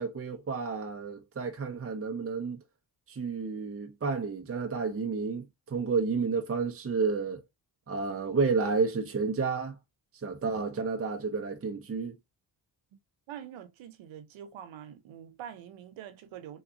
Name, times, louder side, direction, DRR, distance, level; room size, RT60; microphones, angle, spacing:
voice 1, 0.0-2.6 3.1-7.4 7.9-9.8 10.2-12.2, right 4 dB, 30° right, 0.8 m, -31 dB
voice 2, 13.3-16.6, right 9 dB, 90° right, 0.8 m, -45 dB
3.6 x 2.4 x 2.8 m
supercardioid pair, 60°, 46 cm